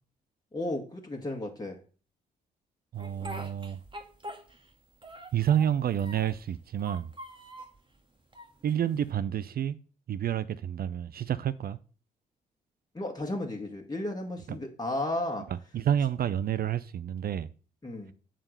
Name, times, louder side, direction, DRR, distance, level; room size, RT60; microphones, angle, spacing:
voice 1, 0.5-1.8 12.9-15.5 17.8-18.1, left 1 dB, 20° left, 1.9 m, -34 dB
voice 2, 2.9-3.8 5.3-7.1 8.6-9.8 10.1-11.8 14.5-14.6 15.7-17.5, right 10 dB, 45° right, 0.6 m, -29 dB
Speech, 3.0-4.7 5.0-6.4 6.8-7.8 8.3-9.1, right 1 dB, 25° right, 2.0 m, -44 dB
7.4 x 5.1 x 6.6 m
figure-of-eight pair, 40°, 21 cm